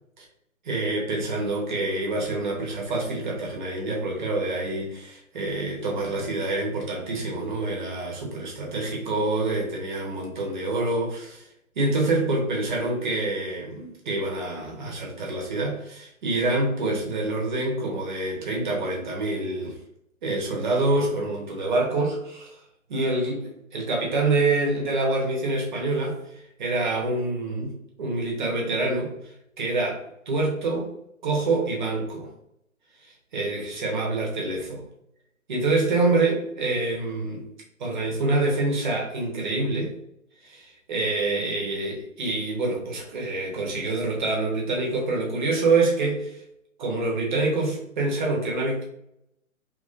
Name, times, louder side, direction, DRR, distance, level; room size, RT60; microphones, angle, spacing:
voice 1, 0.6-11.4 11.8-19.8 20.2-22.5 22.9-26.2 26.6-29.1 29.6-30.9 31.2-32.3 33.0-34.8 35.5-37.5 37.8-40.0 40.4-46.4 46.8-48.8, right 2 dB, 35° right, -1 dB, 0.8 m, -26 dB
2.9 x 2.6 x 2.4 m, 0.78 s
figure-of-eight pair, 140°, 41 cm